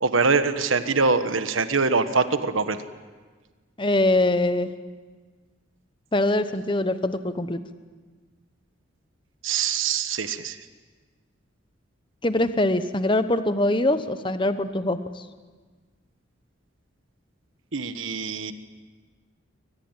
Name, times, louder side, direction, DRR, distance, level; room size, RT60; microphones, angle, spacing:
voice 1, 0.0-2.8 9.4-10.6 17.7-18.5, right 4 dB, 80° right, 10 dB, 1.4 m, -23 dB
voice 2, 3.8-4.7 6.1-7.6 12.2-15.2, left 1 dB, 25° left, 11 dB, 1.0 m, -23 dB
23.0 x 20.0 x 8.9 m, 1.4 s
head